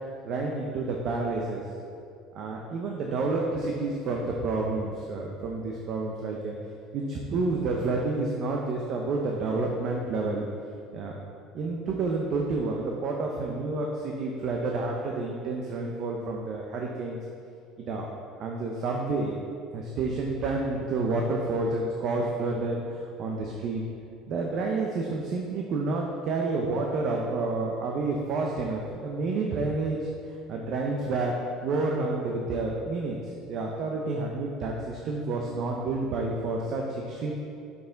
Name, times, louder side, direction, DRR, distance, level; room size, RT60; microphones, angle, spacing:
voice 1, 0.2-1.6 2.3-6.5 6.9-10.5 10.9-11.1 11.5-17.2 17.8-18.1 18.4-19.4 19.7-23.8 24.3-30.1 30.5-31.4 31.6-37.3, right 3 dB, 45° right, 0 dB, 0.6 m, -29 dB
6.7 x 5.6 x 3.9 m, 2.4 s
cardioid pair, 155°, 0 cm